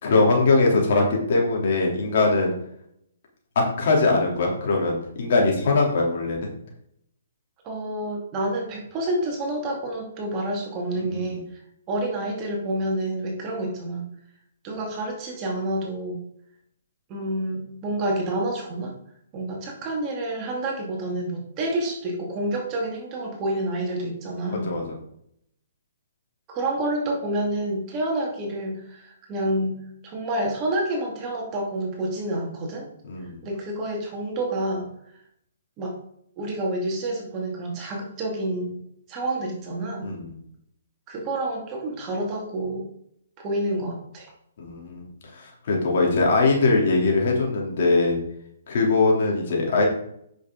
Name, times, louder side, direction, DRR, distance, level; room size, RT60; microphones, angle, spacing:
voice 1, 0.0-2.5 3.5-6.5 10.9-11.4 24.5-24.9 33.1-33.4 40.0-40.3 44.6-48.2 48.7-49.9, left 3 dB, 55° left, -1 dB, 3.1 m, -21 dB
voice 2, 7.6-11.4 11.9-14.1 14.6-16.2 17.1-18.9 19.3-24.7 26.5-32.9 33.4-34.9 35.8-36.0 36.4-38.8 39.1-40.1 41.1-42.9 43.4-44.3, right 1 dB, 30° right, 0 dB, 2.3 m, -28 dB
9.0 x 6.3 x 3.9 m, 0.73 s
hypercardioid pair, 140°, 0 cm